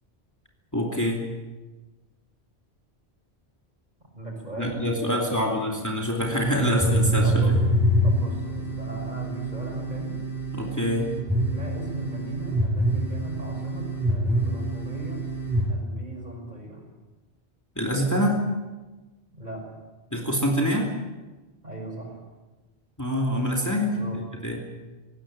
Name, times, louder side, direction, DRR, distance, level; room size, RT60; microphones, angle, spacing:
voice 1, 0.7-1.2 4.6-7.5 10.5-11.1 17.8-18.4 20.1-20.9 23.0-24.0 24.4-24.6, equal, 15° left, 0 dB, 2.9 m, -25 dB
voice 2, 4.2-5.7 6.7-6.9 7.2-7.5 8.0-10.1 11.5-15.2 15.7-16.8 19.3-19.6 21.6-22.2 23.9-24.3, right 1 dB, 40° right, 0 dB, 6.3 m, -37 dB
sound 1, 6.2-15.6, right 1 dB, ahead, 6.0 m, -26 dB
20.0 x 17.5 x 8.9 m, 1.2 s
omnidirectional pair, 1.1 m